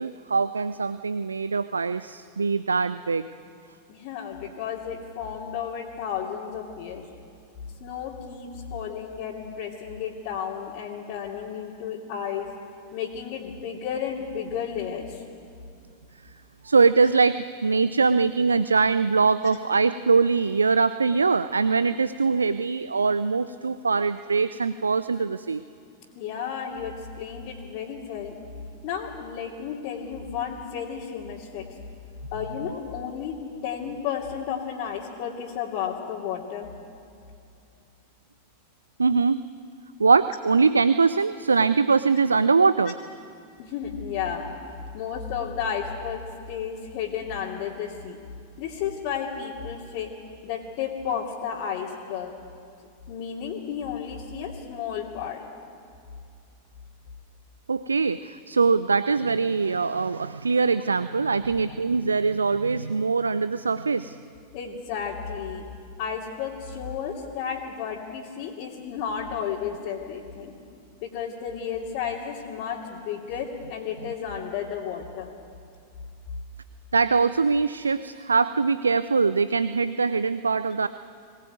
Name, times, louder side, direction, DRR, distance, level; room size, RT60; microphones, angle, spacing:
voice 1, 0.0-3.3 16.6-25.6 39.0-39.4 40.0-42.9 57.7-64.2 76.9-80.9, right 4 dB, 75° right, 15 dB, 0.5 m, -22 dB
voice 2, 3.9-7.0 7.8-12.5 12.9-15.2 26.1-28.4 28.8-31.7 32.3-33.4 33.6-36.7 43.6-44.5 44.9-46.2 46.5-48.2 48.6-50.1 50.4-52.3 53.1-55.4 61.4-61.6 64.5-65.6 66.0-70.5 71.0-75.3, left 7 dB, 45° left, -5 dB, 2.9 m, -32 dB
22.0 x 19.0 x 9.3 m, 2.4 s
figure-of-eight pair, 90°, 0 cm